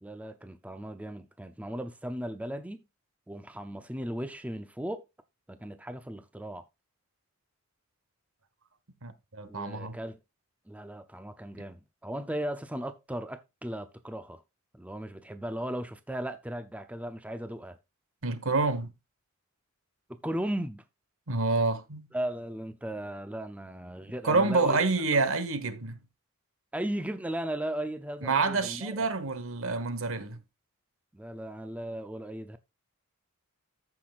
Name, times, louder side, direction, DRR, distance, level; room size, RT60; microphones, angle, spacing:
voice 1, 0.0-2.8 3.3-5.1 5.5-6.6 9.5-10.2 10.7-14.4 14.7-17.8 20.1-20.8 22.1-24.8 25.2-25.3 26.7-29.1 31.1-32.6, right 1 dB, 5° right, 0.6 m, -36 dB
voice 2, 9.0-10.0 18.2-18.9 21.3-22.1 24.2-26.0 28.2-30.4, right 3 dB, 65° right, 1.3 m, -28 dB
14.5 x 6.0 x 2.4 m
head